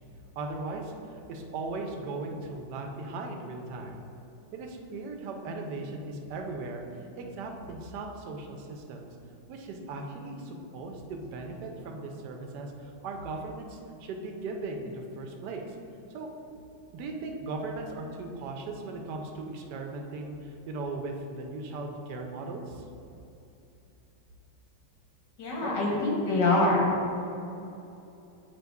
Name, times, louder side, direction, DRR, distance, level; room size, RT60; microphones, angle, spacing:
voice 1, 0.4-4.0 4.5-9.2 9.5-15.7 16.1-16.3 16.9-22.9 25.6-26.0, right 3 dB, 70° right, 2 dB, 1.2 m, -38 dB
voice 2, 25.4-26.9, left 2 dB, 75° left, -3 dB, 1.9 m, -25 dB
7.6 x 2.9 x 4.6 m, 2.8 s
omnidirectional pair, 2.0 m